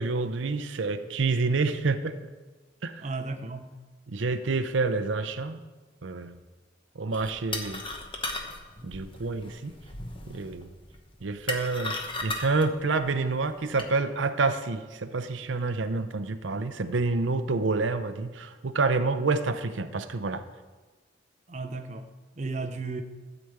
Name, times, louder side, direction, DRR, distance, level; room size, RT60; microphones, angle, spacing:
voice 1, 0.0-2.1 2.8-3.0 4.1-5.6 6.0-6.3 7.0-7.8 8.8-9.7 10.3-10.7 11.2-11.9 12.2-20.4, right 3 dB, 80° right, 10 dB, 0.6 m, -28 dB
voice 2, 3.0-3.8 21.5-23.0, right 3 dB, 40° right, 7 dB, 0.7 m, -35 dB
sound 1, 7.1-13.9, left 2 dB, 25° left, 1.1 m, -37 dB
12.5 x 5.0 x 7.9 m, 1.3 s
head